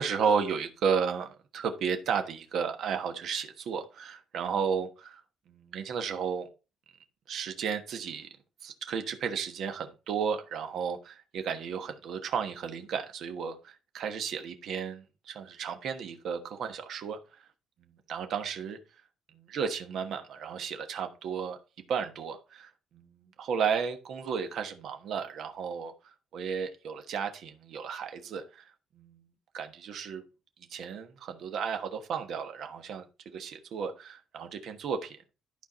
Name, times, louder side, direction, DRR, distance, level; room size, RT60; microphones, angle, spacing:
voice 1, 0.0-5.2 5.5-6.5 7.3-8.3 8.6-17.2 17.8-18.8 19.3-21.6 21.9-29.2 29.5-30.2 30.7-33.1 33.3-35.2, right 6 dB, 50° right, 1.2 m, -33 dB
11.5 x 4.6 x 4.2 m
cardioid pair, 180°, 0 cm